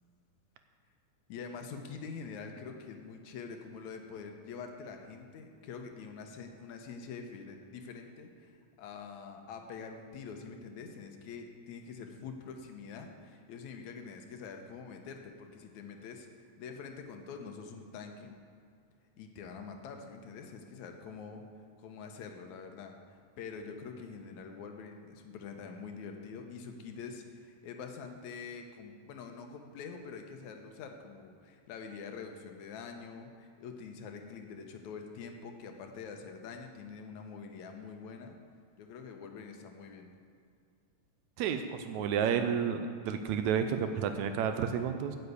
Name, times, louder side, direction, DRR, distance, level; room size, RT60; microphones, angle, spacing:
voice 1, 1.3-16.3 16.6-18.4 19.2-21.4 21.8-38.4 38.8-40.1, left 5 dB, 75° left, 4 dB, 2.2 m, -45 dB
voice 2, 41.4-45.2, right 7 dB, 80° right, 8 dB, 1.9 m, -31 dB
9.6 x 6.8 x 8.1 m, 2.2 s
omnidirectional pair, 3.5 m